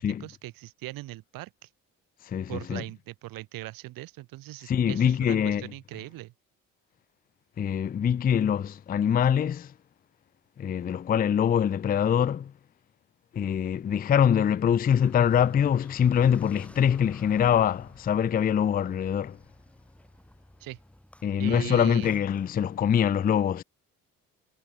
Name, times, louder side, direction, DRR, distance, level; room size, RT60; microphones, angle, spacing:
voice 1, 0.0-1.5 2.5-6.3 20.6-20.8 21.4-22.1, right 17 dB, 85° right, 3.1 m, -40 dB
voice 2, 2.2-2.8 4.7-5.7 7.6-9.7 10.6-12.5 13.3-19.4 21.2-23.6, left 8 dB, 25° left, 0.4 m, -24 dB
Car, 14.8-23.1, left 1 dB, 5° left, 3.6 m, -52 dB
cardioid pair, 85°, 33 cm